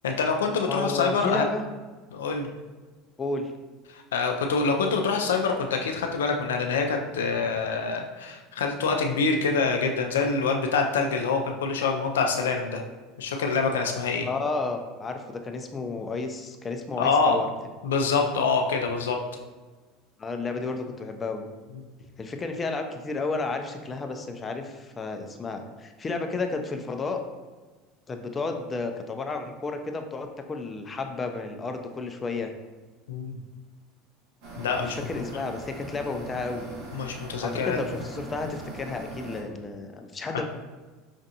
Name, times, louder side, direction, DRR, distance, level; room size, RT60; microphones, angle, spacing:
voice 1, 0.0-1.4 2.1-2.5 3.9-12.8 13.2-14.3 17.0-17.5 17.8-19.2 33.1-33.3 34.6-35.0 36.9-37.8 40.3-40.4, left 4 dB, 90° left, 3 dB, 0.4 m, -25 dB
voice 2, 0.7-1.6 3.2-3.5 14.2-17.5 20.2-21.5 22.2-27.2 28.1-32.5 34.8-36.7 37.4-40.4, left 3 dB, 25° left, 5 dB, 0.5 m, -32 dB
sound 1, 34.4-39.4, right 2 dB, 65° right, 1.3 m, -41 dB
5.1 x 2.5 x 2.7 m, 1.3 s
hypercardioid pair, 90°, 0 cm